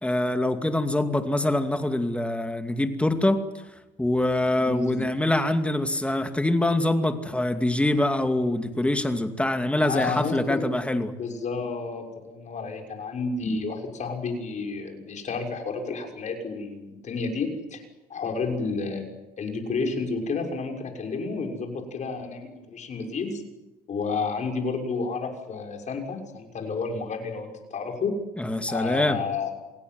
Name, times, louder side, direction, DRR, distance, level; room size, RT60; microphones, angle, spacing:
voice 1, 0.0-3.4 4.0-11.1 28.4-29.2, left 1 dB, 5° left, 7 dB, 2.5 m, -24 dB
voice 2, 4.6-5.0 9.8-10.7 11.2-17.8 18.1-19.0 19.4-23.4 23.9-28.2 28.7-29.5, left 4 dB, 45° left, 3 dB, 6.4 m, -31 dB
27.5 x 18.0 x 9.6 m, 1.0 s
cardioid pair, 110°, 17 cm